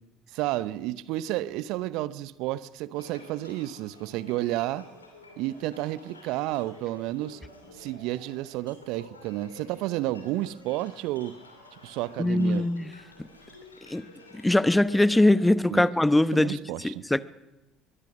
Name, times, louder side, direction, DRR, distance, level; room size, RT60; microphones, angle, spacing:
voice 1, 0.3-4.9 5.4-7.4 7.7-11.3 11.8-12.6 15.7-15.9 16.3-17.0, right 16 dB, 60° right, 0.7 m, -31 dB
sound 1, 2.9-15.5, left 2 dB, 85° left, 2.9 m, -51 dB
voice 2, 12.2-12.9 13.9-14.1 14.3-17.2, left 1 dB, 10° left, 0.9 m, -22 dB
22.5 x 22.0 x 6.2 m
figure-of-eight pair, 55°, 0 cm